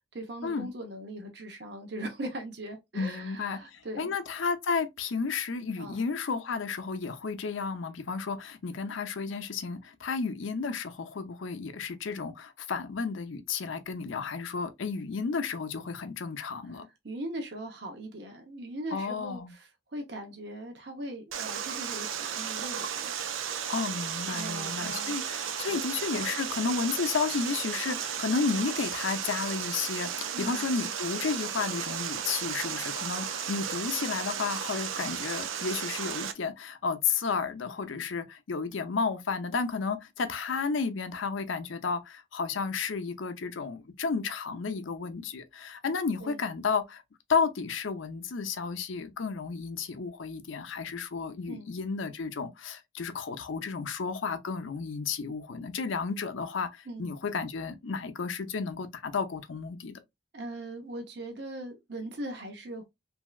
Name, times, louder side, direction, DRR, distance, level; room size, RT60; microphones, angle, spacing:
voice 1, 0.0-4.1 5.8-6.0 17.0-23.1 24.3-25.2 25.7-25.8 30.3-30.6 46.2-46.4 51.5-51.7 56.9-57.1 60.3-62.8, right 1 dB, 55° right, 0.7 m, -40 dB
voice 2, 2.9-16.9 18.9-19.5 23.7-47.0 47.3-60.0, left 5 dB, 80° left, 0.5 m, -32 dB
Water, 21.3-36.3, right 8 dB, 90° right, 0.5 m, -34 dB
3.2 x 2.6 x 2.3 m
head